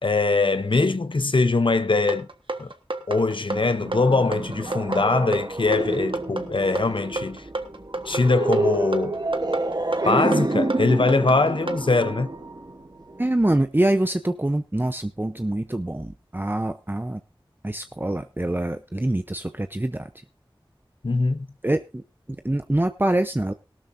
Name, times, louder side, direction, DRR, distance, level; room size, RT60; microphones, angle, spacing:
voice 1, 0.0-2.3 2.6-2.7 3.1-7.5 8.0-9.2 10.0-12.3 21.0-21.5, left 3 dB, 70° left, 0.7 m, -22 dB
sound 1, 2.1-11.8, right 2 dB, 75° right, 1.4 m, -30 dB
sound 2, 3.5-13.3, right 2 dB, 50° right, 1.1 m, -28 dB
voice 2, 13.2-17.2 17.6-20.1 21.6-22.0 22.3-23.5, right 1 dB, 25° right, 0.7 m, -25 dB
18.0 x 12.5 x 2.7 m
wide cardioid pair, 45°, 9 cm